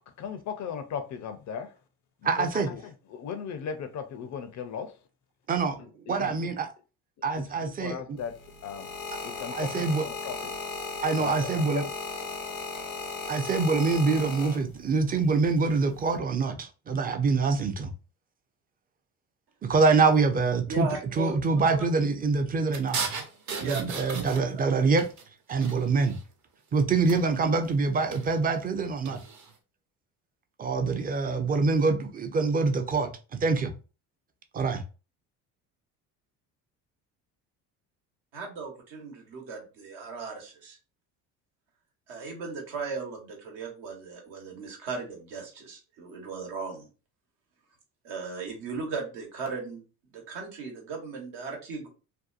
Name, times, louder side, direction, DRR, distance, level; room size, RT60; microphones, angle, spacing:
voice 1, 0.2-1.7 2.2-4.9 5.8-6.5 7.4-8.4 8.6-8.9 9.2-10.5 11.2-11.9, left 7 dB, 45° left, 0.5 m, -37 dB
voice 2, 2.2-2.7 5.5-5.8 6.1-6.7 7.2-8.2 9.5-10.0 11.0-11.8 13.3-17.9 19.6-20.9 21.2-23.0 23.6-25.1 25.5-26.2 26.7-29.2 30.6-33.7 34.5-34.8, right 4 dB, 20° right, 0.5 m, -25 dB
sound 1, 8.2-15.0 15.8-16.2, left 4 dB, 85° left, 0.9 m, -36 dB
voice 3, 20.7-21.3 23.6-23.8 24.2-24.4 38.3-40.8 42.1-46.9 48.0-49.8 50.1-51.9, right 4 dB, 70° right, 1.1 m, -37 dB
sound 2, 22.7-24.7 25.0-26.3 27.0-27.5 27.9-28.4 29.0-29.5, right 5 dB, 45° right, 0.9 m, -36 dB
2.6 x 2.2 x 2.4 m
hypercardioid pair, 65°, 41 cm